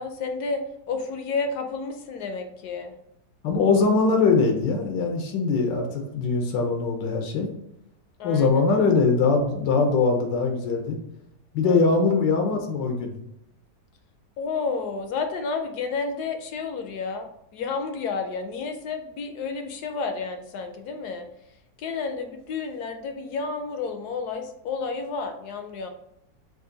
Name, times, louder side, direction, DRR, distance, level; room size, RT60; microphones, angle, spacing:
voice 1, 0.0-2.9 8.2-8.8 11.6-11.9 14.4-21.3 21.8-25.9, left 4 dB, 70° left, 6 dB, 1.0 m, -31 dB
voice 2, 3.4-7.5 8.2-11.0 11.5-13.1, left 4 dB, 90° left, 3 dB, 1.4 m, -22 dB
5.4 x 2.6 x 3.8 m, 0.82 s
omnidirectional pair, 1.9 m